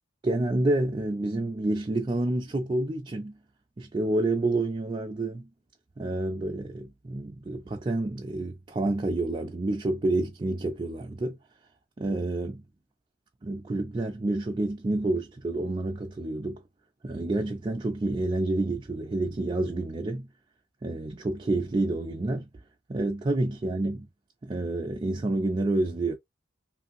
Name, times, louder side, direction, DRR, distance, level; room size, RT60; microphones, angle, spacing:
voice 1, 0.2-3.4 3.8-5.5 6.0-11.4 12.0-12.6 13.4-16.6 17.0-20.3 20.8-22.5 22.9-24.1 24.4-26.2, right 2 dB, 25° right, 0.4 m, -28 dB
3.2 x 2.6 x 2.5 m
head